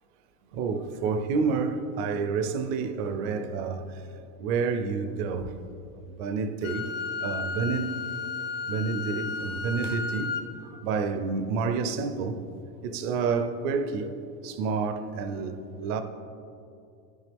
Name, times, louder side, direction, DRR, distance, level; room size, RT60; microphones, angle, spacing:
voice 1, 0.5-4.1 4.4-5.5 6.0-6.9 7.2-8.0 8.7-12.4 12.8-14.1 14.4-16.0, right 5 dB, 40° right, 0.6 m, -29 dB
Wind instrument woodwind instrument, 6.6-10.5, left 4 dB, 35° left, 0.5 m, -33 dB
11.5 x 5.5 x 3.5 m
supercardioid pair, 145°, 44 cm